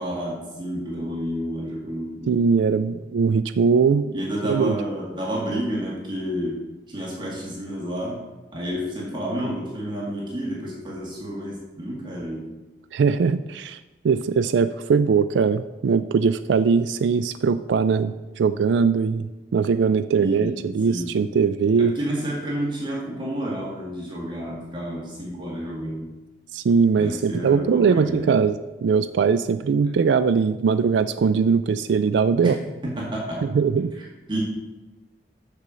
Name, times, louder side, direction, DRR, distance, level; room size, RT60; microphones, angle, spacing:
voice 1, 0.0-2.3 4.1-6.6 6.9-8.2 8.5-12.5 20.2-20.6 20.9-21.1 21.8-26.1 27.0-28.4 32.4-32.5 32.8-33.4 34.0-34.4, equal, 25° right, -4 dB, 2.0 m, -30 dB
voice 2, 2.3-4.1 4.4-4.7 12.9-13.8 14.0-21.9 26.5-28.6 28.8-32.6 33.4-33.9, right 5 dB, 75° right, 11 dB, 0.3 m, -21 dB
6.8 x 6.6 x 6.2 m, 1.1 s
head